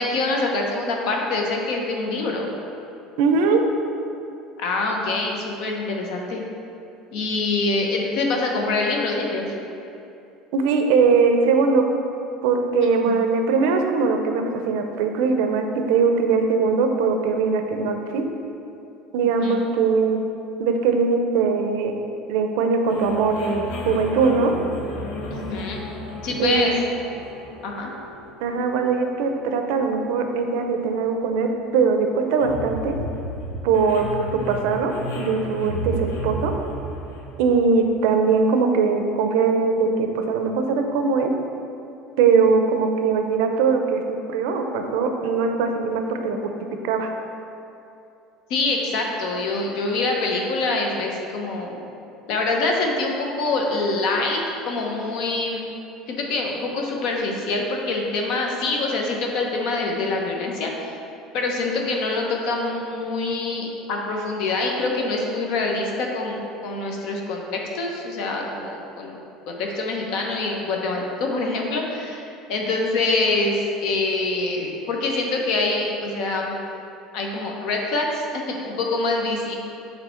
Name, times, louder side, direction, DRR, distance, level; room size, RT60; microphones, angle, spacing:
voice 1, 0.0-2.5 4.6-6.4 7.1-9.5 13.0-13.1 19.4-19.5 25.3-25.8 26.2-26.8 27.6-27.9 48.5-51.8 52.3-54.4 54.6-55.7 56.1-60.9 61.3-69.2 69.5-72.2 72.5-76.6 77.1-79.6, left 3 dB, 55° left, 1 dB, 0.8 m, -25 dB
voice 2, 3.2-3.6 10.5-11.9 12.4-18.3 19.1-20.2 20.6-21.9 22.3-24.5 26.4-26.7 28.4-33.0 33.6-34.0 34.3-36.5 37.4-41.3 42.2-46.4 46.8-47.1, right 5 dB, 75° right, 4 dB, 0.5 m, -21 dB
sound 1, 22.9-38.3, equal, 85° left, 0.9 m, -34 dB
7.0 x 3.3 x 4.4 m, 2.8 s
cardioid pair, 170°, 0 cm